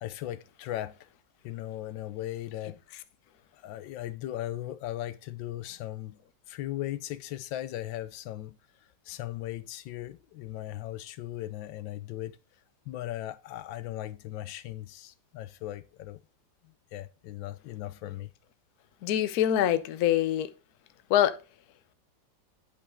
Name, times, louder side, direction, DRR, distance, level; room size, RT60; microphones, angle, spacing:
voice 1, 0.0-0.9 1.4-2.8 3.6-6.2 6.5-8.6 9.1-12.4 12.9-16.2 16.9-18.3, left 14 dB, 85° left, 1.3 m, -37 dB
voice 2, 19.0-20.5 21.1-21.4, left 11 dB, 65° left, 1.1 m, -24 dB
8.4 x 5.6 x 3.6 m
omnidirectional pair, 2.0 m